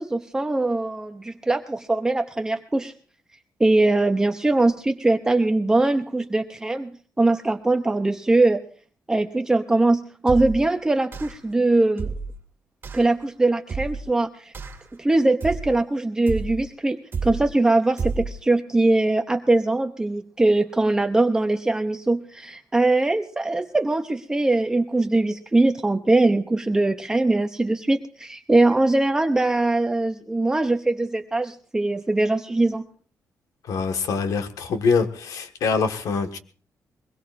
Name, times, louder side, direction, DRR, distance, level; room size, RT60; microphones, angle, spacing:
voice 1, 0.0-2.9 3.6-6.9 7.2-8.6 9.1-12.1 12.9-14.5 15.0-32.8, right 2 dB, 10° right, 6 dB, 0.6 m, -21 dB
sound 1, 10.3-10.7 11.1-11.5 12.0-12.4 12.8-13.1 13.7-14.1 14.5-14.9 15.4-15.8 16.3-16.7 17.1-17.5 18.0-18.4, right 4 dB, 40° right, 2.0 m, -31 dB
voice 2, 33.6-36.4, left 5 dB, 85° left, 7 dB, 1.6 m, -24 dB
22.5 x 21.5 x 2.5 m, 0.42 s
cardioid pair, 145°, 6 cm